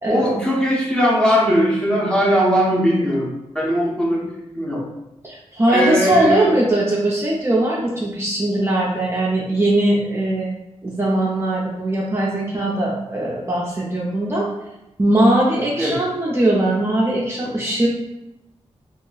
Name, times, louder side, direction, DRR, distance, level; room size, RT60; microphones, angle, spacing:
voice 1, 0.1-4.3 4.5-4.8 5.7-6.5 15.8-16.0, equal, 10° left, -4 dB, 0.7 m, -19 dB
voice 2, 5.2-10.6 10.8-14.5 15.0-17.9, right 1 dB, 20° right, -4 dB, 0.4 m, -20 dB
2.3 x 2.1 x 3.7 m, 0.93 s
wide cardioid pair, 110°, 11 cm